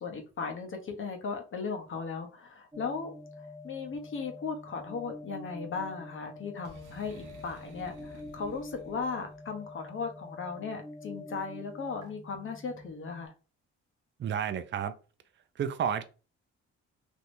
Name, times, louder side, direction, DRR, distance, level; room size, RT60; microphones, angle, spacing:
voice 1, 0.0-13.3, left 5 dB, 45° left, 4 dB, 0.9 m, -37 dB
sound 1, 2.7-13.3, left 1 dB, 15° right, 1.1 m, -46 dB
Boom, 6.6-9.4, right 2 dB, 85° right, 0.9 m, -53 dB
voice 2, 14.2-14.9 15.6-16.0, right 8 dB, 40° right, 11 dB, 0.5 m, -31 dB
3.5 x 2.8 x 2.6 m, 0.34 s
cardioid pair, 90°, 30 cm